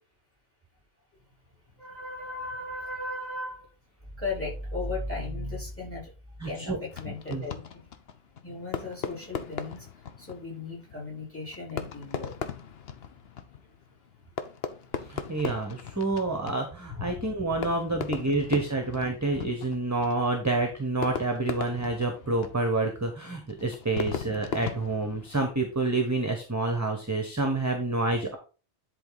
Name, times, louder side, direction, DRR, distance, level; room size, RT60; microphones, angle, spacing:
voice 1, 1.8-3.7 4.1-6.1 6.4-7.9 8.4-9.9 10.2-12.3 16.9-17.1 23.3-23.6, left 2 dB, 10° left, -2 dB, 4.1 m, -36 dB
voice 2, 6.4-6.8 7.3-7.5 15.1-28.4, right 2 dB, 15° right, 4 dB, 1.1 m, -28 dB
Fireworks, 6.9-25.7, left 6 dB, 70° left, 1.0 m, -39 dB
10.5 x 4.3 x 4.0 m, 0.34 s
omnidirectional pair, 1.1 m